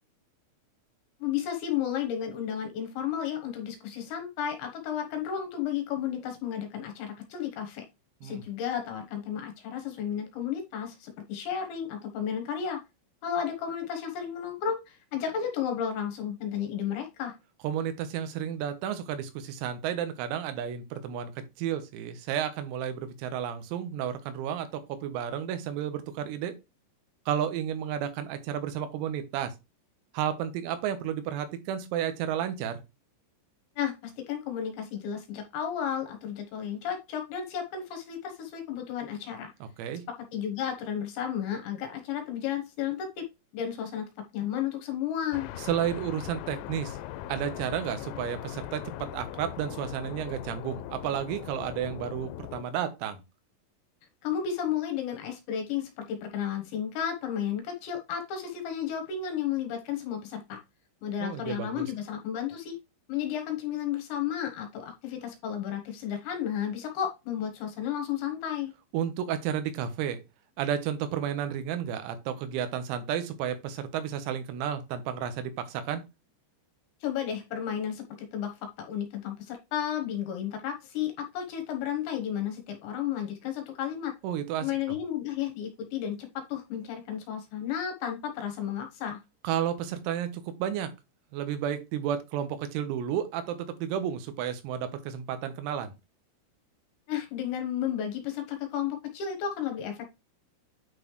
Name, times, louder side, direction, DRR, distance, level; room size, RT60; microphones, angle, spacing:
voice 1, 1.2-7.8 8.2-12.8 13.2-17.3 33.8-39.5 40.1-43.2 43.5-44.1 44.3-45.5 54.2-60.6 61.0-62.8 63.1-68.7 77.0-84.1 84.6-89.2 97.1-100.1, left 9 dB, 70° left, 4 dB, 3.2 m, -33 dB
voice 2, 17.6-26.5 27.3-29.5 30.1-32.8 39.8-40.0 45.6-47.0 47.3-53.2 61.2-61.9 68.9-70.2 70.6-76.0 84.2-84.7 89.4-90.9 91.3-95.9, right 9 dB, 90° right, 9 dB, 3.9 m, -32 dB
sound 1, 45.3-52.6, left 13 dB, 85° left, 3.2 m, -40 dB
9.5 x 4.2 x 3.1 m, 0.25 s
omnidirectional pair, 6.0 m